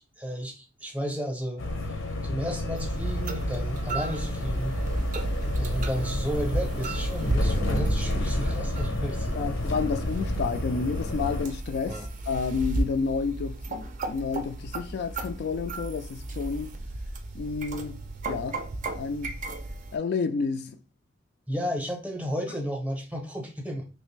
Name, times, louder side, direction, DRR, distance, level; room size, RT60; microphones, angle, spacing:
voice 1, 0.0-2.0 2.2-4.8 5.6-9.5 11.9-12.1 21.5-23.9, equal, 10° right, 0.7 m, -33 dB
sound 1, 1.6-11.5, left 1 dB, 85° left, 0.7 m, -30 dB
sound 2, 2.8-20.0, right 2 dB, 40° right, 0.4 m, -33 dB
voice 2, 9.4-16.7 17.3-18.6 19.0-19.4 19.9-20.8, left 5 dB, 55° left, 0.3 m, -30 dB
3.2 x 2.5 x 3.1 m
head